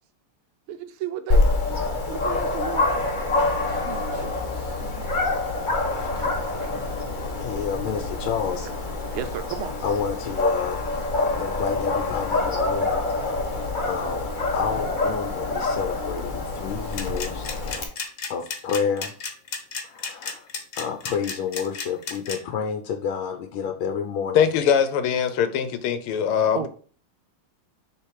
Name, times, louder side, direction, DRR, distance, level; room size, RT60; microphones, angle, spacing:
voice 1, 0.7-1.5 2.1-2.9 3.7-4.8 6.2-6.8 8.6-8.7 9.1-9.7 26.5-26.7, right 10 dB, 85° right, 1.5 m, -35 dB
Dog, 1.3-17.8, left 2 dB, 30° left, 0.9 m, -26 dB
voice 2, 7.4-9.0 9.8-10.8 11.4-14.2 14.5-17.5 18.3-19.1 19.8-20.5 20.8-24.5, left 7 dB, 75° left, 1.5 m, -30 dB
sound 1, 16.9-22.4, left 5 dB, 55° left, 1.5 m, -32 dB
voice 3, 24.3-26.7, left 8 dB, 90° left, 1.7 m, -22 dB
6.8 x 3.8 x 4.8 m
omnidirectional pair, 2.3 m